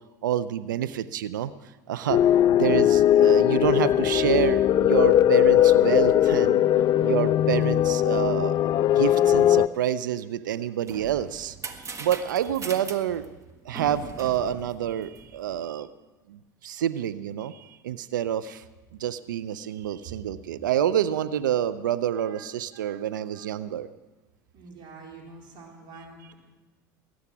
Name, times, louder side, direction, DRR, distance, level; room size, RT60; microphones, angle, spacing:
voice 1, 0.2-1.5 1.9-2.2 2.5-6.6 7.0-8.6 8.9-11.6 12.0-13.3 13.6-15.9 16.3-18.6 19.0-23.9, right 10 dB, 80° right, 13 dB, 0.5 m, -28 dB
sound 1, 2.1-9.7, left 11 dB, 45° left, 0.4 m, -20 dB
sound 2, 10.7-15.6, right 4 dB, 30° right, 1.5 m, -41 dB
voice 2, 24.5-26.3, right 3 dB, 50° right, -1 dB, 4.2 m, -46 dB
20.5 x 9.6 x 6.0 m, 1.2 s
hypercardioid pair, 80°, 10 cm